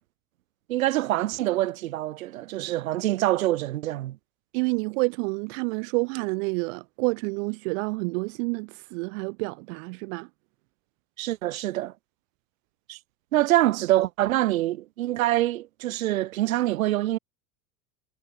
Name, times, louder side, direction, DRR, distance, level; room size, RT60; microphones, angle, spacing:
voice 1, 0.7-4.2 11.2-11.9 12.9-13.0 13.3-17.2, right 15 dB, 85° right, 2.6 m, -25 dB
voice 2, 4.5-10.3, right 30 dB, 70° right, 2.9 m, -29 dB
hypercardioid pair, 95°, 40 cm